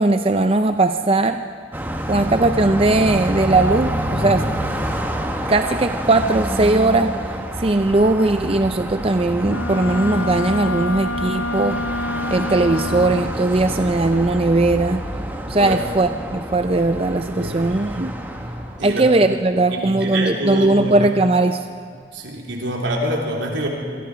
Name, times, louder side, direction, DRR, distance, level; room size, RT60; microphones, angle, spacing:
voice 1, 0.0-1.4 2.1-4.6 5.5-7.1 7.6-11.8 12.3-15.0 15.5-18.2 18.8-21.7, right 2 dB, 30° right, 8 dB, 0.5 m, -18 dB
Car passing by, 1.7-18.9, equal, 10° right, 1.4 m, -28 dB
Wind instrument woodwind instrument, 9.4-13.5, left 2 dB, 75° left, 0.8 m, -27 dB
voice 2, 15.4-15.8 17.4-17.7 18.8-19.1 19.7-20.9 22.1-23.7, right 1 dB, 80° right, -1 dB, 3.8 m, -26 dB
26.0 x 24.0 x 5.1 m, 2.2 s
head